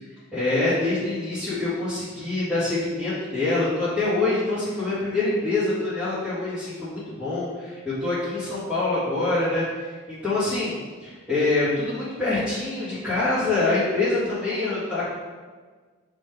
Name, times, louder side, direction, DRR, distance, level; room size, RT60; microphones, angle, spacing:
voice 1, 0.3-15.0, left 2 dB, ahead, -16 dB, 1.8 m, -25 dB
7.6 x 3.8 x 3.4 m, 1.5 s
head